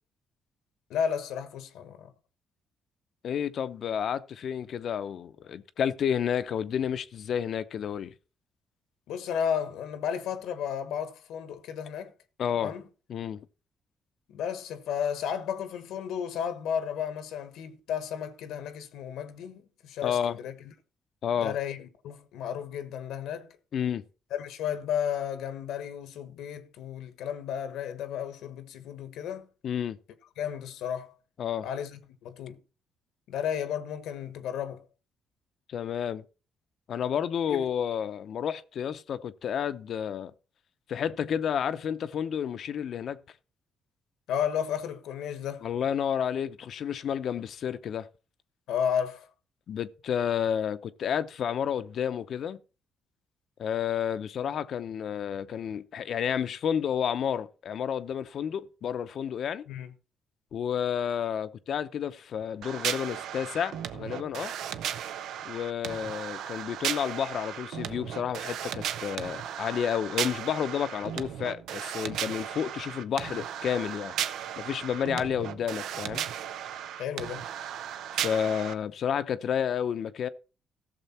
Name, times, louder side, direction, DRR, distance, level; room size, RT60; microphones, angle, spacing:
voice 1, 0.9-2.1 9.1-12.1 12.6-12.8 14.3-20.5 21.4-23.5 24.3-29.5 30.4-31.1 31.6-32.6 33.3-34.8 37.5-37.6 44.3-45.7 48.7-49.3 59.7-59.9 77.0-77.4, left 8 dB, 90° left, 1.3 m, -33 dB
voice 2, 3.2-8.1 12.4-12.7 13.1-13.4 20.0-20.4 21.2-21.6 23.7-24.0 29.6-30.0 31.4-31.7 35.7-36.2 36.9-40.3 40.9-43.2 45.6-48.1 49.7-52.6 53.6-59.7 60.5-64.5 65.4-74.1 74.6-76.2 78.1-80.3, left 8 dB, 65° left, 0.7 m, -30 dB
sound 1, 62.6-78.7, right 10 dB, 80° right, 0.7 m, -35 dB
14.5 x 6.8 x 4.3 m
cardioid pair, 90°, 0 cm